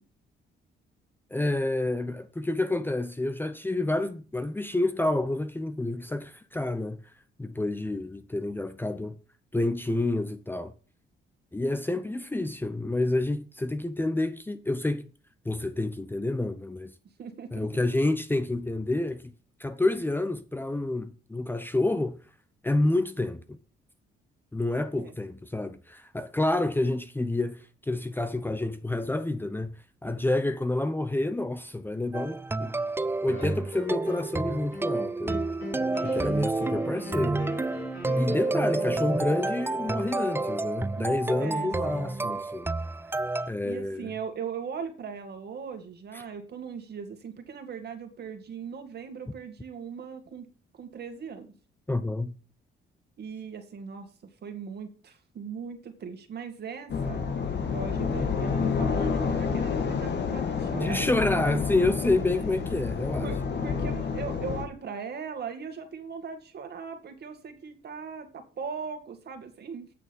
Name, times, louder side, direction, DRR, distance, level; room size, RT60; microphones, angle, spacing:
voice 1, 1.3-7.0 7.4-9.2 9.5-10.7 11.5-15.1 15.4-16.9 17.5-19.3 19.6-22.2 22.6-23.6 24.5-29.7 30.0-32.8 33.2-35.4 36.0-37.4 38.2-42.7 43.5-44.1 51.9-52.3 60.7-63.3, left 2 dB, 10° left, 0.8 m, -29 dB
voice 2, 17.2-17.7 25.0-25.1 35.6-36.3 38.7-39.0 41.0-42.3 43.4-50.5 50.7-51.5 53.2-54.1 54.4-57.2 57.7-61.1 63.2-69.9, right 6 dB, 55° right, 2.2 m, -39 dB
sound 1, 32.1-43.5, right 3 dB, 10° right, 0.4 m, -30 dB
sound 2, 33.3-34.4 34.7-40.6, left 3 dB, 75° left, 4.4 m, -40 dB
sound 3, 56.9-64.6, left 5 dB, 60° left, 1.8 m, -29 dB
8.7 x 6.6 x 5.3 m
cardioid pair, 90°, 20 cm